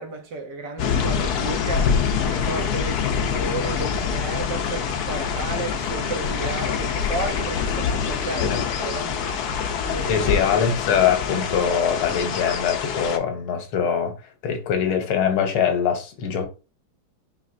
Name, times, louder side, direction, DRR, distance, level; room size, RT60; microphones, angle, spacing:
voice 1, 0.0-1.9 2.2-9.2 9.8-10.3, right 3 dB, 65° right, 1.3 m, -33 dB
sound 1, 0.8-13.2, left 6 dB, 65° left, 1.0 m, -25 dB
voice 2, 10.1-14.1 14.4-16.5, left 7 dB, 85° left, 1.8 m, -22 dB
5.1 x 3.2 x 2.5 m
omnidirectional pair, 2.3 m